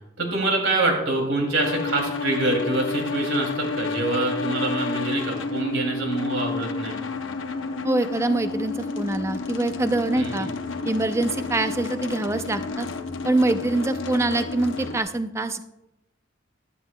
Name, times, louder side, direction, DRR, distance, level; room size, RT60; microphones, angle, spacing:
voice 1, 0.2-7.0 10.1-10.5, right 2 dB, 80° right, 2 dB, 2.6 m, -25 dB
sound 1, 1.6-15.0, left 3 dB, 80° left, 0.8 m, -30 dB
voice 2, 7.8-10.5 10.9-12.9 13.2-15.6, right 2 dB, 15° right, 10 dB, 0.4 m, -24 dB
13.5 x 11.0 x 2.2 m, 0.93 s
head